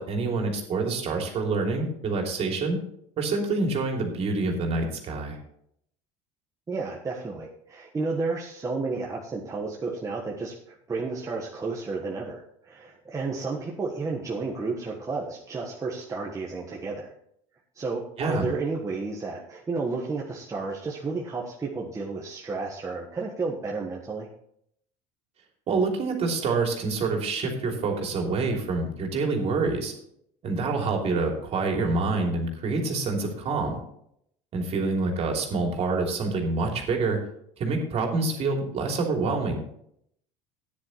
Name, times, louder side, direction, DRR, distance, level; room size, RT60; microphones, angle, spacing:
voice 1, 0.0-2.8 3.2-5.4 18.2-18.4 25.7-29.9 30.4-33.8 34.5-37.2 37.6-39.6, right 3 dB, 45° right, 1 dB, 3.0 m, -27 dB
voice 2, 6.7-17.1 17.7-24.3, right 3 dB, 20° right, -2 dB, 1.4 m, -32 dB
14.0 x 9.8 x 3.2 m, 0.71 s
supercardioid pair, 105°, 15 cm